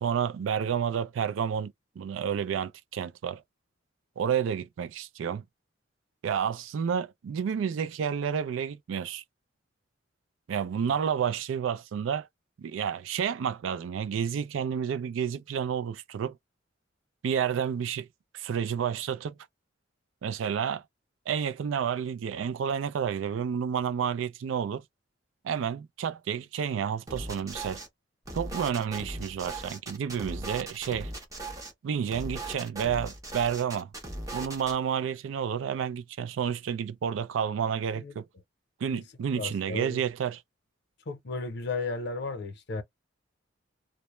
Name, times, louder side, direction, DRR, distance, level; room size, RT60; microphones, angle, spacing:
voice 1, 0.0-3.4 4.2-5.4 6.2-9.2 10.5-12.3 12.6-16.4 17.2-18.1 18.3-19.4 20.2-20.8 21.3-24.8 25.4-27.8 28.3-31.1 31.8-33.9 34.3-38.3 38.8-40.4, right 7 dB, 85° right, 0.3 m, -30 dB
sound 1, 27.1-27.9 28.3-31.7 32.1-34.8, right 2 dB, 20° right, 0.7 m, -38 dB
voice 2, 39.4-40.0 41.1-42.8, left 3 dB, 60° left, 0.7 m, -34 dB
2.1 x 2.0 x 3.0 m
head